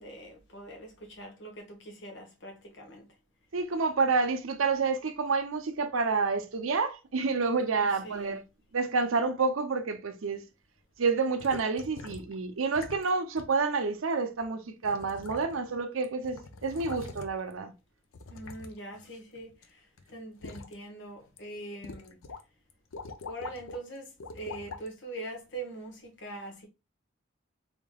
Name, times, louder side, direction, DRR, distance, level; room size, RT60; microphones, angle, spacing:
voice 1, 0.0-3.1 7.8-8.4 18.3-19.5 20.1-22.2 23.3-26.7, right 1 dB, 55° left, 1.1 m, -43 dB
voice 2, 3.5-8.4 8.7-10.4 11.0-17.7, right 4 dB, 80° right, 0.6 m, -29 dB
sound 1, 11.4-12.3 12.7-13.1 13.4-13.5 14.4-14.5 14.8-15.8 16.0-17.5 18.1-19.7 20.0-20.7 21.2-21.4 21.8-22.4 22.7-23.8 24.2-24.9 25.6-25.7, left 3 dB, 85° left, 0.5 m, -44 dB
3.6 x 3.6 x 2.3 m
head